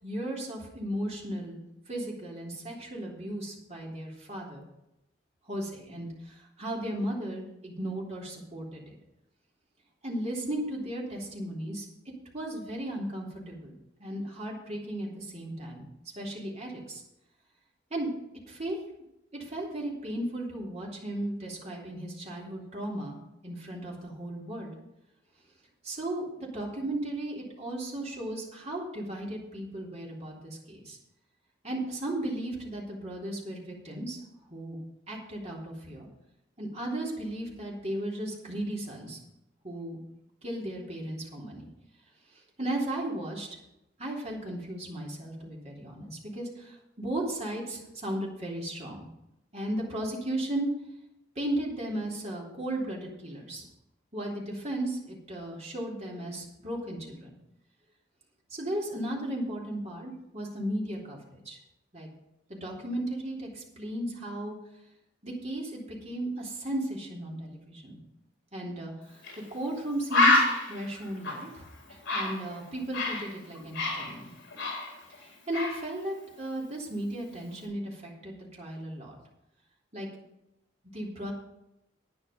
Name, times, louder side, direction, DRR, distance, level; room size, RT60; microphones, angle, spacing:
voice 1, 0.0-4.7 5.5-9.0 10.0-11.9 12.3-15.8 16.1-17.0 17.9-18.1 18.5-18.8 19.3-24.7 25.8-31.0 31.6-34.2 34.5-34.8 35.1-36.1 36.6-39.2 39.6-40.0 40.4-41.7 42.3-43.5 44.0-49.1 49.5-50.7 51.3-53.6 54.1-57.3 58.5-61.6 61.9-62.1 62.5-64.6 65.2-68.0 68.5-69.2 69.5-74.3 75.1-79.2 79.9-80.1 80.9-81.3, right 1 dB, 35° right, -3 dB, 3.2 m, -35 dB
Bird, 69.2-69.4 69.7-69.8 70.1-73.3 73.5-75.2 75.5-75.8, left 2 dB, 65° left, 4.4 m, -27 dB
10.5 x 9.8 x 5.3 m, 0.88 s
head